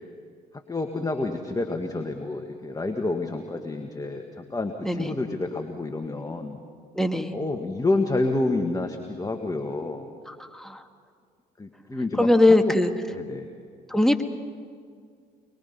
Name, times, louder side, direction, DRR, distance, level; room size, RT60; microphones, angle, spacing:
voice 1, 0.7-6.6 7.3-10.1 11.6-12.7 13.1-13.5, left 2 dB, 15° left, 4 dB, 1.9 m, -29 dB
voice 2, 7.0-7.3 10.5-10.8 12.2-12.9 13.9-14.2, left 1 dB, ahead, 5 dB, 1.9 m, -20 dB
24.5 x 22.5 x 5.6 m, 2.1 s
hypercardioid pair, 55°, 21 cm